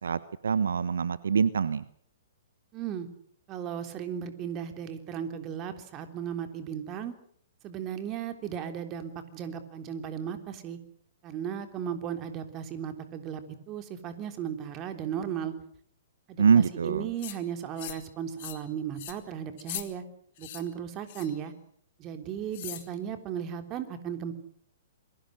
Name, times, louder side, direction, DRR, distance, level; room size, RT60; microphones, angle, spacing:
voice 1, 0.0-1.8 16.4-17.1, right 6 dB, 70° right, 16 dB, 1.0 m, -24 dB
voice 2, 2.7-3.1 3.5-7.1 7.6-10.8 11.2-15.5 16.3-20.0 20.4-21.5 22.0-24.3, right 8 dB, 30° right, 8 dB, 3.4 m, -36 dB
sound 1, 17.2-17.4 17.8-18.1 18.4-18.6 19.0-19.2 19.6-19.9 20.4-20.6 21.1-21.4 22.5-22.9, left 14 dB, 45° left, 3.0 m, -40 dB
28.0 x 23.0 x 6.5 m, 0.63 s
figure-of-eight pair, 115°, 0 cm